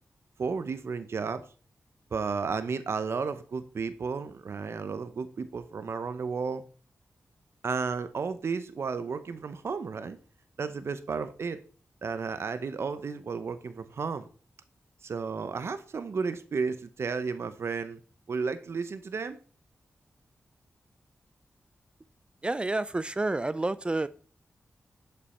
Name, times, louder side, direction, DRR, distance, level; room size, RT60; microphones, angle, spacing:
voice 1, 0.4-1.4 2.1-6.6 7.6-10.2 10.6-11.6 12.0-14.3 15.0-18.0 18.3-19.4, right 5 dB, 65° right, 0.7 m, -33 dB
voice 2, 22.4-24.1, right 2 dB, 20° right, 0.3 m, -29 dB
11.5 x 5.3 x 4.3 m
wide cardioid pair, 115°, 5 cm